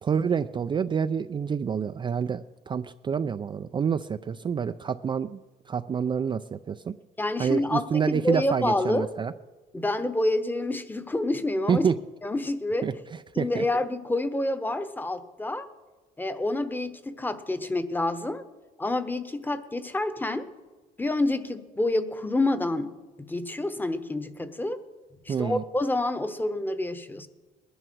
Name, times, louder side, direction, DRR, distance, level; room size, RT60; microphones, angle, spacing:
voice 1, 0.0-5.4 5.7-7.0 7.4-9.3 11.7-11.9 12.8-12.9 13.4-13.7 25.3-25.6, right 7 dB, 30° right, 10 dB, 0.4 m, -27 dB
voice 2, 7.2-9.1 9.7-11.9 12.2-12.9 13.3-15.7 16.2-18.4 18.8-20.5 21.0-22.9 23.2-24.8 25.2-27.3, left 2 dB, 10° left, 12 dB, 1.0 m, -28 dB
20.0 x 11.0 x 6.1 m, 1.2 s
cardioid pair, 110°, 17 cm